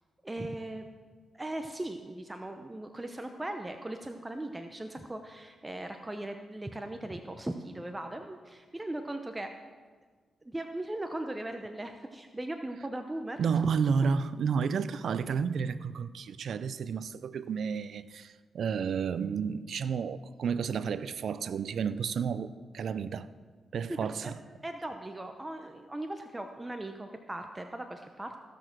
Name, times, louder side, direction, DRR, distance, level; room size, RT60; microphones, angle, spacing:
voice 1, 0.2-0.9 1.3-9.5 10.4-13.8 23.9-24.3 24.6-28.4, right 1 dB, 20° right, 0.8 m, -38 dB
voice 2, 13.4-23.3 23.7-24.3, right 6 dB, 70° right, 0.5 m, -31 dB
15.5 x 6.6 x 6.0 m
cardioid pair, 55°, 0 cm